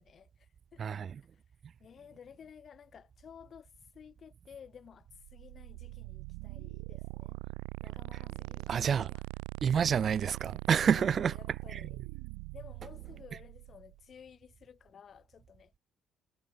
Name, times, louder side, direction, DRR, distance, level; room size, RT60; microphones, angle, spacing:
voice 1, 0.0-1.0 1.3-1.4 1.8-7.4 7.8-9.2 9.7-10.0 10.8-12.0 12.5-15.7, left 7 dB, 50° left, 7.2 m, -54 dB
voice 2, 0.8-1.1 8.7-9.1 9.6-11.3, right 7 dB, 50° right, 0.7 m, -28 dB
sound 1, 5.1-14.0, right 40 dB or more, 85° right, 4.5 m, -42 dB
hypercardioid pair, 55°, 0 cm